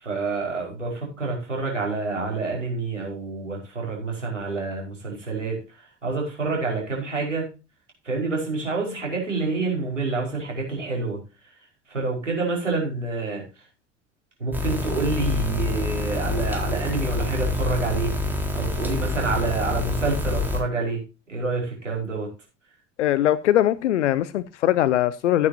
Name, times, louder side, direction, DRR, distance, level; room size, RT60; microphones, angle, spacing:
voice 1, 0.0-5.6 6.0-7.4 8.1-11.2 11.9-13.4 14.4-18.1 18.5-21.0 21.3-22.3, right 3 dB, 90° right, 5.2 m, -27 dB
sound 1, 14.5-20.6, left 2 dB, 5° right, 4.1 m, -27 dB
voice 2, 23.0-25.5, left 12 dB, 75° left, 0.7 m, -21 dB
15.0 x 9.4 x 2.8 m
figure-of-eight pair, 65°, 36 cm